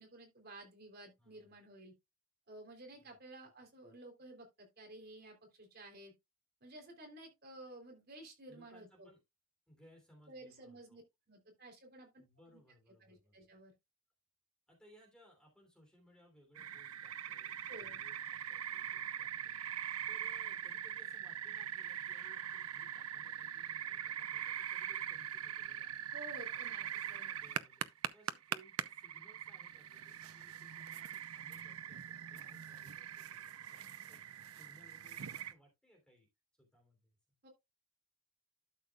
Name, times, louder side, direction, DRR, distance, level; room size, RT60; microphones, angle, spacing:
voice 1, 0.0-1.9 2.5-6.1 6.6-9.1 10.3-12.1 12.5-12.6 13.0-13.7 17.7-18.0 26.1-27.3 37.4-37.5, right 1 dB, 45° right, 3.4 m, -53 dB
voice 2, 1.2-1.5 3.0-3.2 8.5-9.2 9.7-11.0 12.1-13.4 14.7-19.6 20.1-25.9 26.3-27.8 28.1-36.3 36.5-37.2, equal, 5° left, 3.2 m, -65 dB
sound 1, 16.5-35.5, right 10 dB, 80° right, 0.6 m, -42 dB
12.0 x 6.6 x 2.4 m
head